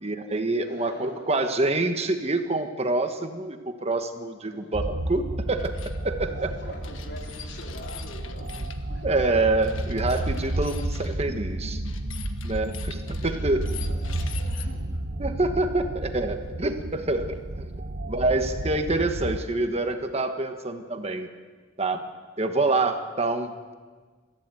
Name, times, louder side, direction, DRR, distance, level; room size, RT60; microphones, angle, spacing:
voice 1, 0.0-5.7 6.0-6.5 9.0-11.8 12.4-13.6 15.2-17.7 18.0-21.3 21.8-22.0 22.4-23.7, right 2 dB, 30° right, 7 dB, 1.4 m, -26 dB
voice 2, 0.6-1.3 4.5-5.0 6.3-9.3 13.0-15.0, left 1 dB, 60° left, 1 dB, 4.0 m, -44 dB
sound 1, 4.7-19.4, right 1 dB, 55° right, 1.1 m, -32 dB
sound 2, 5.6-6.0 6.8-8.8 9.6-11.2 11.8-14.6, left 10 dB, 85° left, 1.5 m, -44 dB
22.5 x 15.0 x 9.1 m, 1.5 s
head